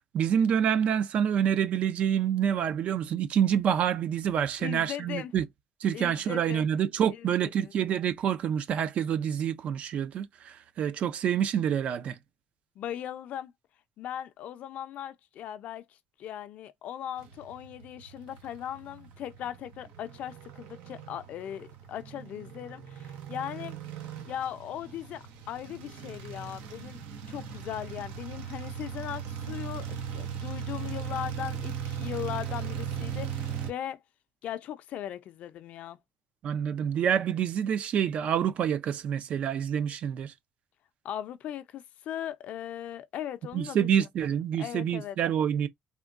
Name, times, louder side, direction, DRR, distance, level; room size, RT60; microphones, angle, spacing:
voice 1, 0.1-5.4 5.8-12.2 36.4-40.3 43.5-45.7, right 9 dB, 50° right, 0.4 m, -27 dB
voice 2, 4.6-5.3 5.9-6.7 7.1-7.7 12.8-13.5 14.0-15.9 16.2-23.8 24.3-27.0 27.3-34.0 34.4-36.0 41.0-43.9 44.6-45.2, left 10 dB, 60° left, 0.4 m, -38 dB
sound 1, 17.2-33.7, right 8 dB, 85° right, 0.8 m, -38 dB
3.6 x 2.2 x 2.4 m
cardioid pair, 115°, 3 cm